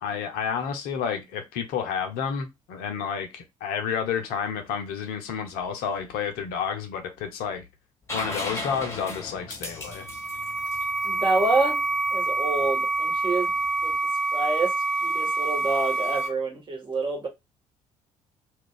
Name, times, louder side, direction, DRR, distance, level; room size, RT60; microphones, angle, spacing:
voice 1, 0.0-7.6 8.1-10.1, left 7 dB, 60° left, 0.6 m, -30 dB
sound 1, 8.1-11.8 13.7-13.8, left 2 dB, 15° left, 1.1 m, -35 dB
sound 2, 9.8-16.3, right 3 dB, 85° right, 0.8 m, -27 dB
voice 2, 11.0-11.8 12.1-13.5 13.8-13.9 14.3-14.7 15.0-17.3, right 3 dB, 30° right, 1.2 m, -27 dB
2.3 x 2.3 x 3.6 m
figure-of-eight pair, 50°, 18 cm